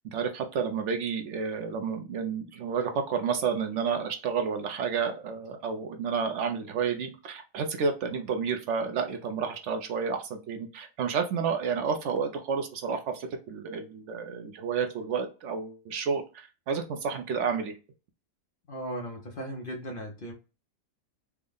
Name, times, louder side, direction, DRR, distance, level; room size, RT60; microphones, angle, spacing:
voice 1, 0.1-17.7, right 6 dB, 70° right, 6 dB, 0.8 m, -30 dB
voice 2, 18.7-20.3, right 1 dB, 50° left, 2 dB, 0.7 m, -37 dB
3.4 x 2.1 x 3.6 m, 0.32 s
omnidirectional pair, 1.4 m